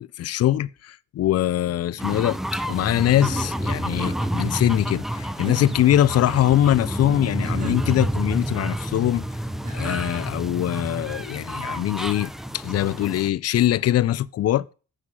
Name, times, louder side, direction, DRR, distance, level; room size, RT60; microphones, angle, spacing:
voice 1, 0.0-9.3 9.7-14.7, left 12 dB, 55° left, 0.5 m, -22 dB
sound 1, 2.0-13.3, right 1 dB, ahead, 0.7 m, -29 dB
sound 2, 3.2-4.5 5.3-5.9 7.4-8.2 9.6-10.4, right 2 dB, 25° right, 4.9 m, -39 dB
8.3 x 5.7 x 6.1 m
cardioid pair, 90°, 30 cm